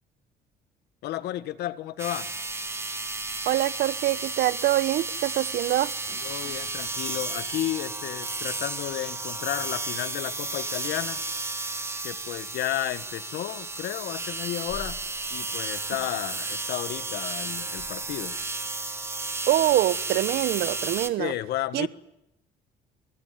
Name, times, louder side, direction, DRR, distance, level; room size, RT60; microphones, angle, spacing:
voice 1, 1.0-2.3 6.2-11.2 12.0-15.0 15.3-18.3 21.2-21.9, left 13 dB, 75° left, 1.6 m, -32 dB
sound 1, 2.0-21.1, right 3 dB, 15° right, 2.5 m, -33 dB
voice 2, 3.4-5.9 19.5-21.3 21.7-21.9, right 15 dB, 75° right, 1.1 m, -24 dB
25.5 x 23.0 x 9.4 m
cardioid pair, 110°, 17 cm